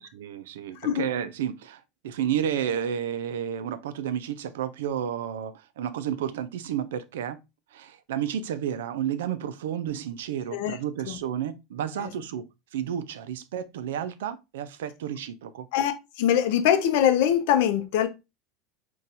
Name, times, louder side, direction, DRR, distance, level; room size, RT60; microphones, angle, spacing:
voice 1, 0.0-7.4 7.7-12.5 12.7-15.7, right 9 dB, 85° right, 0.3 m, -31 dB
voice 2, 16.2-18.1, left 10 dB, 75° left, 0.5 m, -22 dB
4.0 x 2.3 x 2.5 m
supercardioid pair, 105°, 0 cm